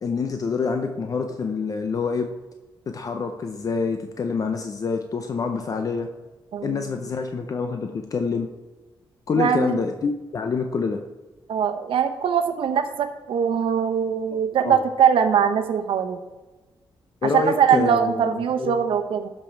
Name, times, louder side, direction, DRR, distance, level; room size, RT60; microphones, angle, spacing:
voice 1, 0.0-2.3 2.9-6.1 6.6-8.5 9.3-11.0 14.6-14.8 17.2-18.7, left 4 dB, 40° left, 5 dB, 0.6 m, -26 dB
voice 2, 6.5-6.8 9.3-9.8 11.5-16.2 17.2-19.3, right 8 dB, 90° right, 8 dB, 0.9 m, -22 dB
12.5 x 5.5 x 4.5 m, 1.2 s
wide cardioid pair, 140°, 9 cm